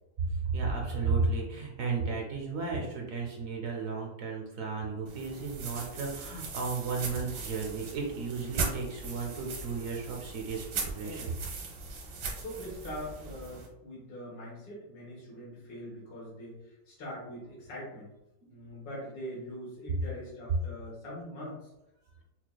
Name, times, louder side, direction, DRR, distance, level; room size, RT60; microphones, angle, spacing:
voice 1, 0.3-11.4, right 4 dB, 65° right, 0 dB, 0.8 m, -34 dB
sound 1, 5.1-13.7, right 4 dB, 90° right, 1.6 m, -39 dB
voice 2, 12.4-18.1 18.5-21.6, equal, 75° left, -6 dB, 1.9 m, -42 dB
5.8 x 2.4 x 2.2 m, 0.92 s
omnidirectional pair, 2.0 m